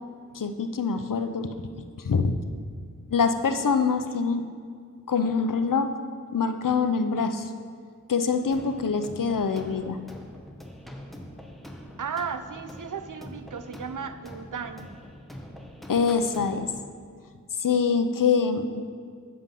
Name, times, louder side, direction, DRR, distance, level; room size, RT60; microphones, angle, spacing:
voice 1, 0.3-1.5 2.0-2.4 3.1-4.4 5.1-5.9 6.3-7.5 8.1-10.0 15.9-16.7 17.6-18.7, left 5 dB, 85° left, 8 dB, 0.6 m, -24 dB
sound 1, 8.5-16.9, equal, ahead, 1.0 m, -44 dB
voice 2, 12.0-14.9, right 6 dB, 75° right, 10 dB, 0.6 m, -35 dB
7.7 x 7.5 x 5.3 m, 2.1 s
wide cardioid pair, 45°, 32 cm